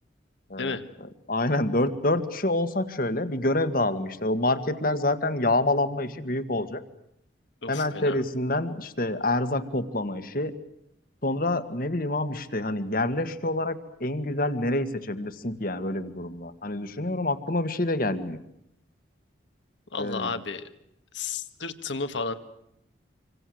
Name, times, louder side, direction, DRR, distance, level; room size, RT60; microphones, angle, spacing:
voice 1, 1.3-6.8 7.7-10.5 11.2-18.4 20.0-20.3, left 2 dB, 50° left, 10 dB, 1.8 m, -27 dB
voice 2, 7.6-8.2 19.9-20.6 21.1-22.3, left 4 dB, 80° left, 8 dB, 1.9 m, -32 dB
26.5 x 25.5 x 7.9 m, 0.79 s
head